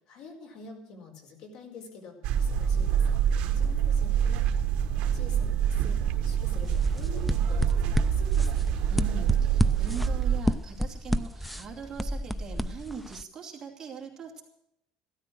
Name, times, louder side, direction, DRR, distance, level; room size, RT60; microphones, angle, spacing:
voice 1, 0.1-4.4 5.1-8.9, left 4 dB, 55° left, 4 dB, 4.7 m, -47 dB
sound 1, 2.2-10.4, right 8 dB, 65° right, 1.5 m, -26 dB
sound 2, 6.6-13.2, equal, ahead, 0.5 m, -31 dB
voice 2, 8.9-14.4, right 5 dB, 25° right, -1 dB, 2.7 m, -41 dB
15.5 x 13.5 x 6.1 m, 0.77 s
cardioid pair, 175°, 2 cm